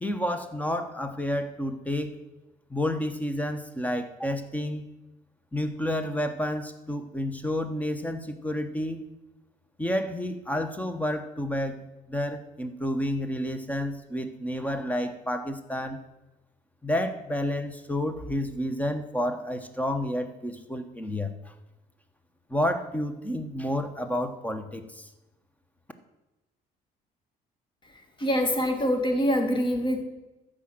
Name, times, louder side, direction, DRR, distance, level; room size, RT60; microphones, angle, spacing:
voice 1, 0.0-2.2 2.7-4.8 5.5-9.0 9.8-11.8 12.1-16.0 16.8-21.5 22.5-25.1, left 1 dB, 10° left, 9 dB, 1.1 m, -30 dB
voice 2, 27.8-30.0, equal, 30° left, 5 dB, 2.0 m, -25 dB
13.0 x 5.0 x 7.7 m, 1.0 s
cardioid pair, 110°, 17 cm